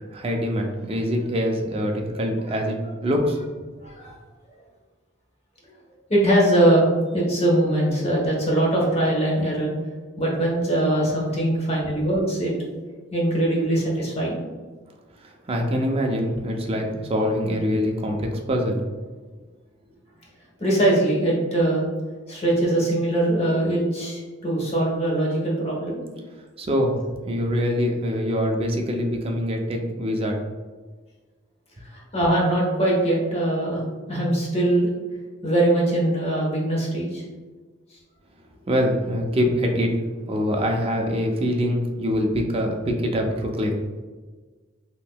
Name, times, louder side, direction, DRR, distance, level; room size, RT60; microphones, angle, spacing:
voice 1, 0.1-2.8 3.0-3.4 15.2-18.8 26.6-27.0 27.3-30.4 38.7-39.9 40.3-43.9, equal, 30° right, 2 dB, 0.4 m, -24 dB
voice 2, 3.8-4.1 6.1-6.9 7.1-9.7 10.2-12.7 13.1-14.4 20.6-21.9 22.3-26.0 31.8-33.8 34.1-34.9 35.4-37.2, right 1 dB, 30° left, -3 dB, 0.9 m, -22 dB
3.7 x 2.7 x 2.2 m, 1.4 s
head